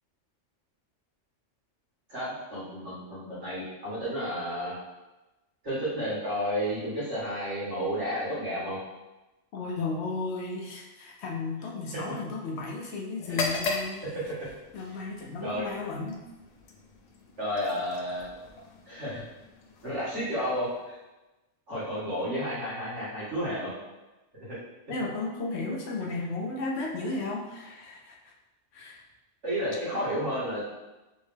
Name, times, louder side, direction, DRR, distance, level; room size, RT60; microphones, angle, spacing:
voice 1, 2.1-4.7 5.6-8.8 15.4-15.6 17.4-18.2 18.9-19.2 19.8-20.9 21.7-23.7 29.4-30.6, equal, 65° right, -10 dB, 2.1 m, -31 dB
voice 2, 9.5-14.0 14.7-16.2 24.9-28.3 28.7-29.0, left 3 dB, 65° left, 0 dB, 0.8 m, -34 dB
sound 1, 13.2-21.0, left 3 dB, 85° left, 0.3 m, -38 dB
3.5 x 3.1 x 3.3 m, 1.1 s
omnidirectional pair, 1.3 m